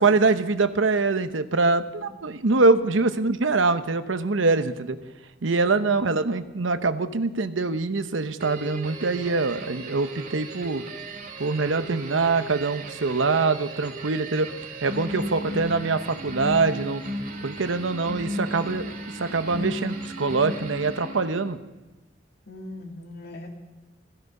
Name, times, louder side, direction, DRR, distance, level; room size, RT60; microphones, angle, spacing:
voice 1, 0.0-5.0 5.4-10.8 11.4-14.5 14.8-17.0 17.4-21.6, right 3 dB, 90° right, 11 dB, 0.9 m, -24 dB
voice 2, 2.3-2.6 5.7-6.0 22.5-23.5, left 1 dB, 55° left, 2 dB, 2.4 m, -41 dB
sound 1, 8.4-21.6, right 1 dB, 45° right, 2.2 m, -35 dB
16.0 x 15.0 x 5.4 m, 1.1 s
head